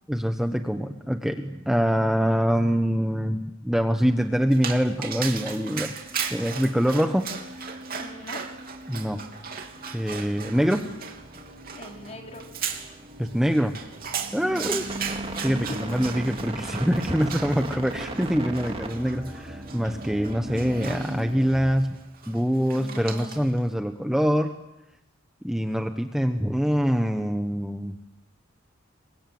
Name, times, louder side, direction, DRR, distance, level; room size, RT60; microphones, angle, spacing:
voice 1, 0.1-5.9 6.3-7.3 8.9-9.2 9.9-10.8 13.2-13.7 14.3-14.8 15.4-22.0 22.3-24.5 25.4-28.0, equal, ahead, 5 dB, 1.0 m, -24 dB
Dog, 4.5-23.6, right 7 dB, 45° right, 3.2 m, -37 dB
sound 1, 4.6-21.6, right 1 dB, 30° right, 2.7 m, -39 dB
voice 2, 8.0-8.4 11.7-12.5 14.4-14.9 15.5-15.8 17.6-17.7 22.7-23.3, equal, 35° left, 1 dB, 4.8 m, -40 dB
30.0 x 24.5 x 7.8 m, 0.93 s
head